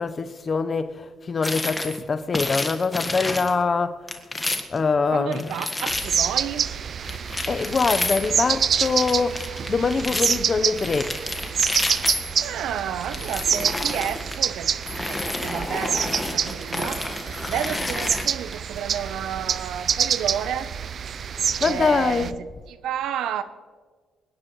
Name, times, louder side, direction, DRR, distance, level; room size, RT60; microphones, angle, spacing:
voice 1, 0.0-4.0 4.7-5.5 7.5-11.2 21.6-22.4, left 4 dB, 40° left, 1.0 m, -24 dB
sound 1, 1.4-2.0 2.3-3.6 4.1-4.8 5.3-6.2 7.0-8.4 8.7-10.4 10.8-12.5 13.0-14.4 14.8-18.5, left 2 dB, 15° left, 1.7 m, -30 dB
voice 2, 5.1-6.7 12.3-14.7 15.0-17.1 17.5-20.7 21.6-23.4, right 9 dB, 80° right, 0.9 m, -31 dB
sound 2, 5.9-22.3, right 7 dB, 55° right, 0.5 m, -27 dB
26.0 x 10.5 x 3.2 m
cardioid pair, 90°, 0 cm